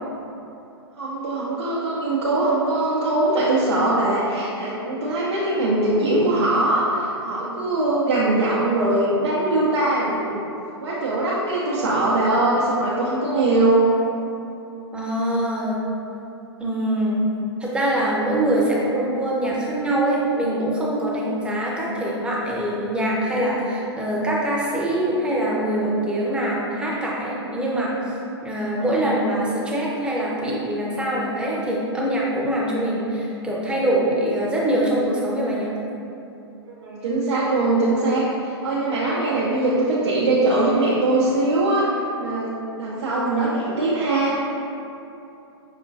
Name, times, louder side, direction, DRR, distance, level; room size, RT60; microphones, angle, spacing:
voice 1, 1.0-10.4 10.8-13.9 21.2-21.4 36.7-44.4, right 2 dB, 80° right, -7 dB, 0.6 m, -21 dB
voice 2, 14.9-15.8 16.6-17.2 17.6-27.9 28.4-35.7, right 1 dB, 5° right, -5 dB, 0.6 m, -23 dB
5.6 x 2.2 x 2.6 m, 2.8 s
hypercardioid pair, 115°, 14 cm